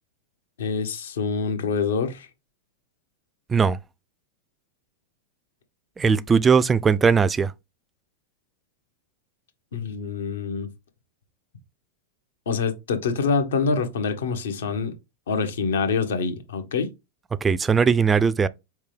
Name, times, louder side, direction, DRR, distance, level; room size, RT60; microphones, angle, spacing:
voice 1, 0.6-2.3 6.0-6.2 9.7-10.7 12.5-14.9 15.3-16.9, left 5 dB, 80° left, 1.1 m, -26 dB
voice 2, 6.0-7.5 17.4-18.5, right 5 dB, 20° right, 0.3 m, -19 dB
4.5 x 3.5 x 3.3 m
hypercardioid pair, 105°, 0 cm